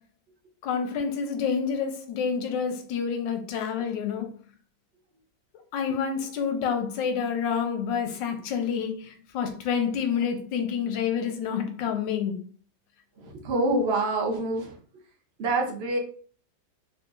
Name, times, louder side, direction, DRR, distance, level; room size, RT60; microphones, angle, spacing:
voice 1, 0.6-4.3 5.7-12.4, left 7 dB, 90° left, 1.3 m, -28 dB
voice 2, 13.2-14.7 15.4-16.0, right 2 dB, 75° right, 0.5 m, -26 dB
4.5 x 2.5 x 2.3 m
omnidirectional pair, 2.0 m